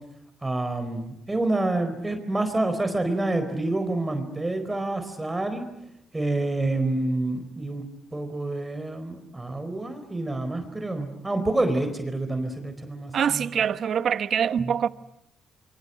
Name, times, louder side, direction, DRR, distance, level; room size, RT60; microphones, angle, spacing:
voice 1, 0.4-5.6 6.1-7.8 8.1-13.6, right 2 dB, 15° right, 4.3 m, -28 dB
voice 2, 13.1-14.9, right 8 dB, 60° right, 1.1 m, -24 dB
26.5 x 24.5 x 9.3 m
cardioid pair, 90°, 0 cm